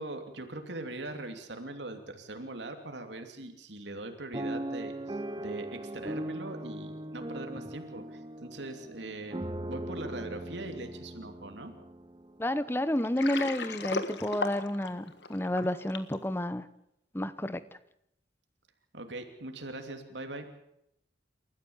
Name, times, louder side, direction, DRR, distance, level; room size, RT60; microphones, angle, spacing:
voice 1, 0.0-9.4 9.7-11.7 18.9-20.5, right 2 dB, 85° right, 5 dB, 2.9 m, -41 dB
sound 1, 4.3-12.4 13.0-13.1 13.4-13.7, right 1 dB, 25° right, 0.9 m, -39 dB
voice 2, 12.4-16.6 17.1-17.6, left 1 dB, 15° left, 14 dB, 0.8 m, -30 dB
Water, 13.0-16.2, left 3 dB, 75° left, 1.6 m, -36 dB
29.0 x 14.0 x 7.2 m, 0.79 s
head